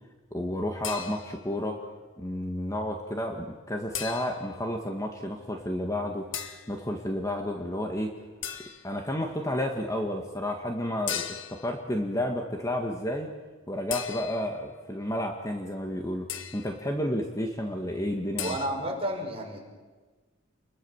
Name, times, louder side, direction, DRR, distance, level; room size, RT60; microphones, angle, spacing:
voice 1, 0.3-1.8 2.2-8.1 8.8-13.3 13.7-18.6, left 1 dB, 15° left, 3 dB, 1.9 m, -31 dB
sound 1, 0.8-1.5 3.9-4.6 6.3-6.7 8.4-9.0 11.1-11.7 13.9-14.6 16.3-16.8 18.4-18.7, left 9 dB, 65° left, 1.9 m, -36 dB
voice 2, 18.4-19.6, right 1 dB, 30° right, 1 dB, 5.5 m, -31 dB
29.0 x 22.5 x 7.3 m, 1.3 s
head